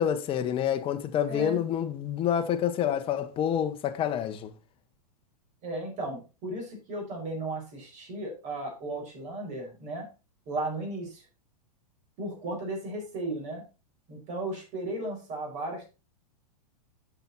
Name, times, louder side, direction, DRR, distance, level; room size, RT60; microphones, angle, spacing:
voice 1, 0.0-4.5, left 9 dB, 25° left, 1.0 m, -28 dB
voice 2, 1.3-1.6 5.6-10.1 10.5-11.2 12.2-13.6 14.1-15.9, right 2 dB, 40° right, 5.0 m, -35 dB
9.2 x 6.0 x 4.2 m
hypercardioid pair, 125°, 20 cm